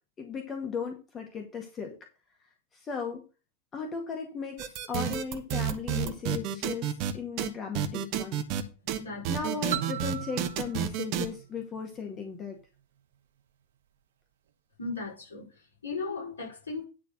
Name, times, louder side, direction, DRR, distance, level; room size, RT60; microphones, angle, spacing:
voice 1, 0.2-1.9 2.7-3.2 3.7-8.4 9.3-12.6, left 5 dB, 25° left, 1.8 m, -36 dB
sound 1, 4.6-7.1 7.4-7.5 7.7-8.6 8.9-9.0 9.2-11.2, right 10 dB, 40° right, 1.1 m, -30 dB
voice 2, 8.9-9.6 14.8-16.8, left 3 dB, 70° left, 5.0 m, -37 dB
sound 2, 9.7-12.4, right 12 dB, 60° right, 0.5 m, -38 dB
10.5 x 4.1 x 6.4 m
figure-of-eight pair, 90°, 0 cm